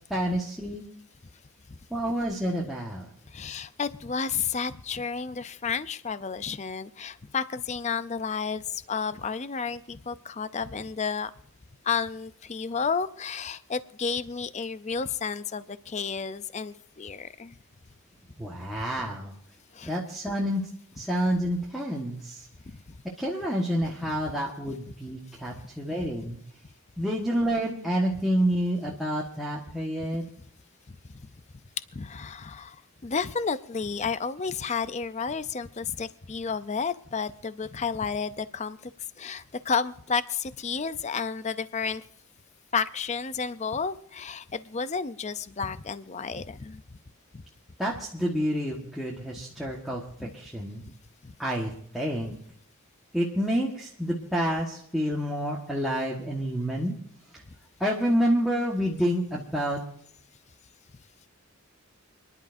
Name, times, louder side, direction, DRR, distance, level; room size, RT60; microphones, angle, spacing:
voice 1, 0.1-0.8 1.9-3.1 18.4-19.3 19.8-20.6 21.0-22.4 23.2-26.4 27.0-30.2 47.8-50.0 50.3-50.8 51.4-52.3 53.1-56.9 57.8-59.8, equal, ahead, -5 dB, 1.4 m, -28 dB
voice 2, 3.3-11.3 11.8-17.6 19.7-19.9 22.7-23.0 25.5-25.6 30.9-31.0 31.9-32.8 33.0-38.9 39.2-42.0 42.7-46.8 47.3-47.4 50.2-50.3 51.2-51.3, left 5 dB, 30° left, 13 dB, 0.5 m, -31 dB
29.5 x 11.0 x 2.6 m, 0.67 s
head